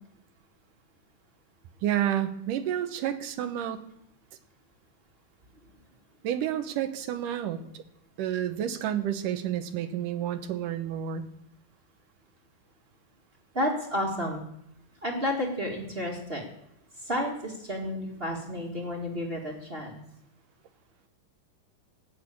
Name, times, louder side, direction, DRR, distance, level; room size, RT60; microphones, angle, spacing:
voice 1, 1.8-3.8 6.2-7.6 8.2-11.3, right 10 dB, 80° right, 10 dB, 2.6 m, -30 dB
voice 2, 13.5-14.4 15.0-16.4 17.0-20.0, left 1 dB, 20° right, 0 dB, 1.8 m, -31 dB
17.5 x 6.9 x 8.5 m, 0.76 s
omnidirectional pair, 3.7 m